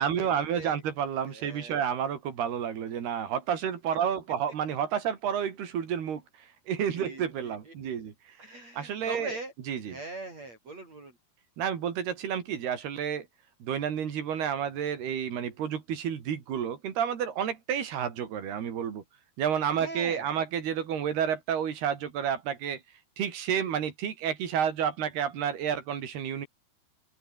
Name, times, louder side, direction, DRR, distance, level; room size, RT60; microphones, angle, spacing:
voice 1, 0.0-8.1 8.8-9.3 9.7-10.0 11.6-13.3 13.6-19.0 19.4-22.8 23.2-26.5, right 8 dB, 70° right, 4.9 m, -30 dB
voice 2, 1.3-1.8 6.9-7.7 8.4-9.5 9.9-11.2 19.7-20.3, right 2 dB, 40° right, 9.0 m, -41 dB
open air
omnidirectional pair, 4.8 m